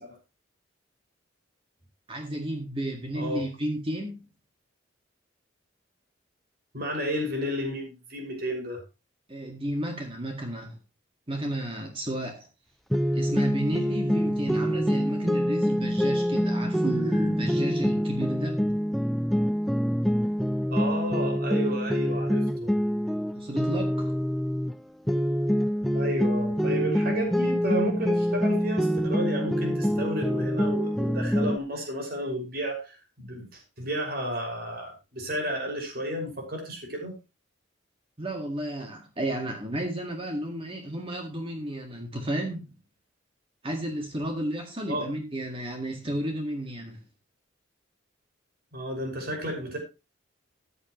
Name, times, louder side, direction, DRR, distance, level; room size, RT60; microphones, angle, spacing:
voice 1, 2.1-4.2 9.3-10.8 11.3-12.5 13.1-18.6 23.3-24.1 38.2-42.7 43.6-47.0, right 1 dB, 30° right, 3 dB, 1.9 m, -32 dB
voice 2, 6.7-8.8 20.7-22.7 25.9-37.1 44.9-45.1 48.7-49.8, equal, 50° right, 2 dB, 5.9 m, -32 dB
sound 1, 12.9-24.8 25.1-31.6, equal, ahead, 0.5 m, -26 dB
14.5 x 10.0 x 3.1 m, 0.28 s
head